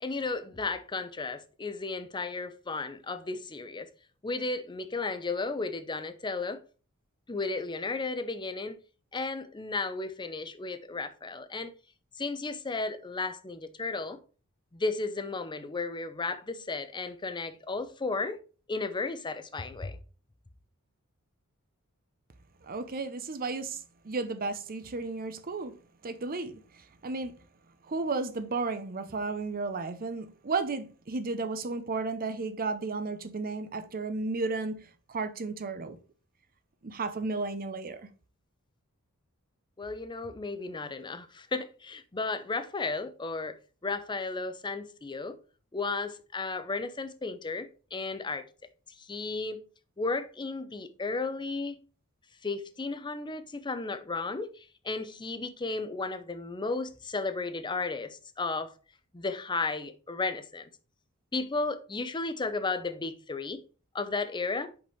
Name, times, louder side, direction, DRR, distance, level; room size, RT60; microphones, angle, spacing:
voice 1, 0.0-3.9 4.2-6.6 7.3-8.8 9.1-11.7 12.2-14.2 14.7-18.4 18.7-20.0 39.8-43.5 43.8-45.4 45.7-48.4 49.0-49.6 50.0-51.8 52.4-58.7 59.1-60.7 61.3-63.6 63.9-64.7, left 3 dB, 20° left, 0.6 m, -34 dB
voice 2, 22.6-25.7 26.0-26.5 27.0-27.3 27.9-34.8 35.1-36.0 36.8-38.1, right 3 dB, 40° right, 0.7 m, -33 dB
5.3 x 5.1 x 4.6 m
head